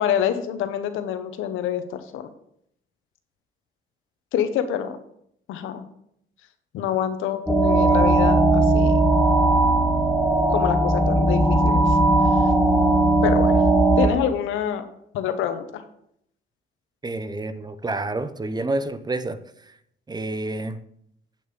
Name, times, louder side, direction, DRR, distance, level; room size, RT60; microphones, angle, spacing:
voice 1, 0.0-2.3 4.3-5.0 5.5-5.8 6.7-9.0 10.5-12.0 13.2-13.6 14.0-14.9 15.1-15.8, left 9 dB, 90° left, 10 dB, 0.9 m, -26 dB
sound 1, 7.5-14.1, right 2 dB, 5° left, 1.4 m, -18 dB
voice 2, 17.0-19.4 20.1-20.8, right 2 dB, 20° right, 13 dB, 0.7 m, -28 dB
8.6 x 6.3 x 5.2 m, 0.72 s
cardioid pair, 90°, 20 cm